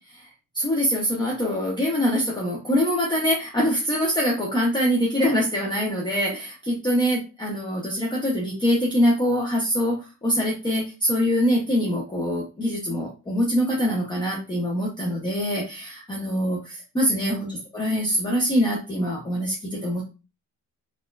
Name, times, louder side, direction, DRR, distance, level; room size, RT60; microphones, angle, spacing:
voice 1, 0.5-17.5 17.7-20.0, equal, 15° left, -2 dB, 0.7 m, -24 dB
4.1 x 2.5 x 2.3 m, 0.31 s
cardioid pair, 125°, 31 cm